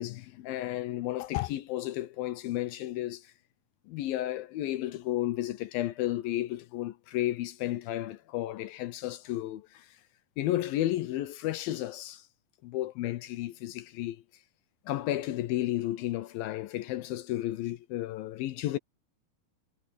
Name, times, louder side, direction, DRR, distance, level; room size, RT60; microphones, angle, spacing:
voice 1, 0.0-3.3 3.9-10.0 10.4-12.3 12.6-14.2 14.9-18.8, left 14 dB, 75° left, 2.3 m, -33 dB
omnidirectional pair, 4.9 m